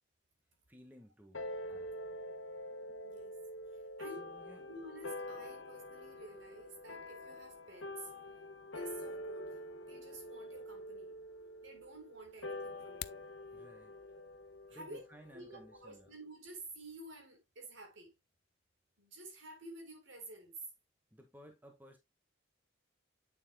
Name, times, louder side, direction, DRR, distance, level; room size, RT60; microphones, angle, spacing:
voice 1, 0.7-2.0 2.7-3.1 4.2-4.6 13.5-14.0 14.7-16.1 21.1-22.0, equal, 10° right, 1.5 m, -58 dB
sound 1, 1.3-16.1, left 1 dB, 80° left, 1.3 m, -46 dB
voice 2, 3.0-3.4 3.7-4.3 4.6-8.1 8.7-11.2 11.6-13.3 14.1-14.3 14.7-15.0 15.3-18.1 19.0-20.6, right 2 dB, 75° right, 3.9 m, -51 dB
sound 2, 12.8-13.3, left 13 dB, 55° left, 0.4 m, -45 dB
8.7 x 7.2 x 2.2 m
head